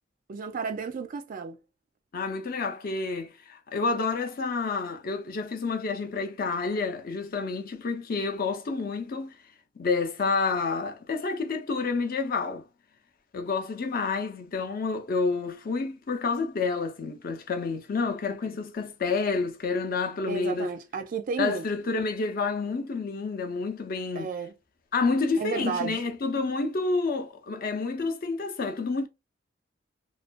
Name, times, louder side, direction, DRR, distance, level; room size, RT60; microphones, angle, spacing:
voice 1, 0.3-1.6 20.3-21.7 24.2-24.5 25.4-26.0, right 5 dB, 45° right, 0.4 m, -32 dB
voice 2, 2.1-9.4 9.8-12.7 13.3-20.7 21.4-24.3 24.9-29.1, left 4 dB, 50° left, 0.5 m, -29 dB
2.4 x 2.2 x 2.5 m
head